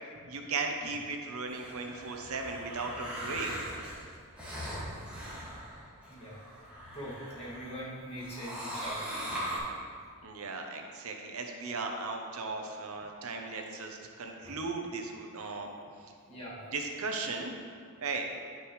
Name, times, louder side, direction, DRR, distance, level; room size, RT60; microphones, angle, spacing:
voice 1, 0.2-3.5 10.2-15.7 16.7-17.5 18.0-18.3, right 3 dB, 70° right, 3 dB, 0.8 m, -36 dB
sound 1, 1.5-7.8 8.1-9.6, equal, 5° right, 1.9 m, -40 dB
voice 2, 6.1-6.5 6.9-9.2 14.4-14.6 16.3-16.6, equal, 25° left, -8 dB, 2.1 m, -42 dB
9.7 x 6.3 x 3.2 m, 2.1 s
head